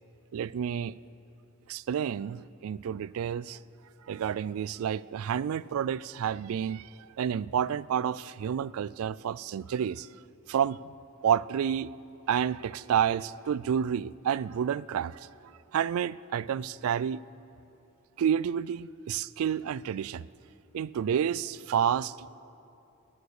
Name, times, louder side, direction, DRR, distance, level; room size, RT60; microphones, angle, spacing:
voice 1, 0.3-1.0 1.7-3.6 4.1-6.9 7.2-10.1 10.5-10.8 11.2-11.9 12.3-15.2 15.7-17.2 18.2-20.3 20.7-22.4, right 8 dB, 75° right, 20 dB, 0.3 m, -29 dB
19.0 x 9.3 x 6.5 m, 2.7 s
head